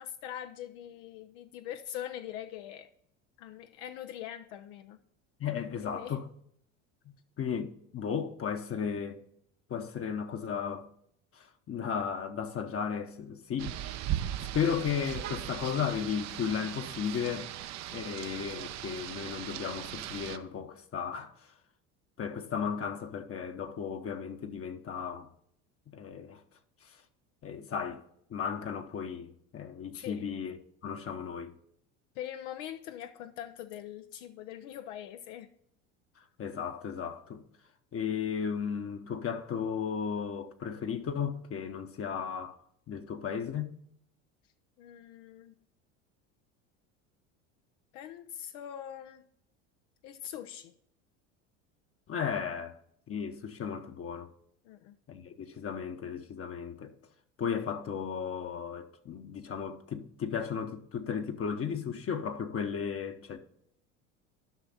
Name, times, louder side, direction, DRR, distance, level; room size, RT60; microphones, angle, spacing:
voice 1, 0.0-2.9 3.4-5.0 5.8-6.2 29.9-30.2 32.2-35.5 44.8-45.6 47.9-49.2 50.0-50.7 54.6-55.0, left 11 dB, 75° left, 0.7 m, -42 dB
voice 2, 5.4-6.2 7.4-9.2 9.7-10.9 11.4-13.8 14.4-17.5 17.9-21.3 22.2-25.3 25.9-26.4 27.4-28.0 28.3-30.6 30.8-31.5 36.4-37.4 37.9-42.6 42.9-43.8 52.1-52.7 53.1-54.3 55.1-56.9 57.4-63.4, left 7 dB, 35° left, 1.0 m, -35 dB
Rain, 13.6-20.4, right 12 dB, 45° right, 0.7 m, -38 dB
12.0 x 5.7 x 4.2 m
hypercardioid pair, 90°, 37 cm